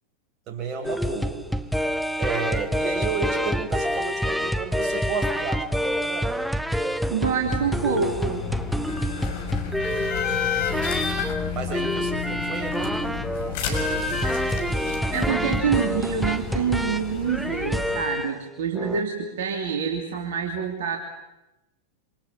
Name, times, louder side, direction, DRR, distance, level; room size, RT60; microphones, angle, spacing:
voice 1, 0.5-1.4 2.2-6.4 10.5-11.1 11.5-14.9, right 4 dB, 35° right, 4 dB, 6.3 m, -33 dB
sound 1, 0.8-18.4 18.8-19.0, equal, ahead, 1.0 m, -27 dB
voice 2, 7.1-8.5 15.1-21.0, right 6 dB, 55° right, 2 dB, 3.0 m, -26 dB
sound 2, 7.4-18.0, left 7 dB, 50° left, 6.3 m, -31 dB
28.0 x 26.5 x 7.1 m, 0.95 s
figure-of-eight pair, 90°, 0 cm